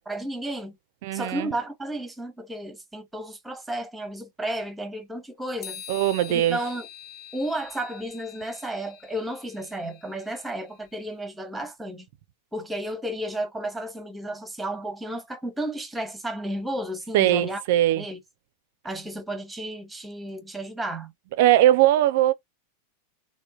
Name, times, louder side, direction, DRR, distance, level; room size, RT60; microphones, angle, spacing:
voice 1, 0.1-0.8 1.1-5.8 6.3-6.9 7.3-12.1 12.5-17.6 18.0-18.2 18.8-21.1, right 1 dB, 5° right, 0.9 m, -33 dB
voice 2, 1.0-1.5 5.9-6.6 17.1-18.0 21.4-22.3, right 13 dB, 50° right, 0.4 m, -20 dB
sound 1, 5.6-10.9, left 9 dB, 45° left, 1.1 m, -45 dB
3.6 x 2.2 x 2.4 m
figure-of-eight pair, 90°, 0 cm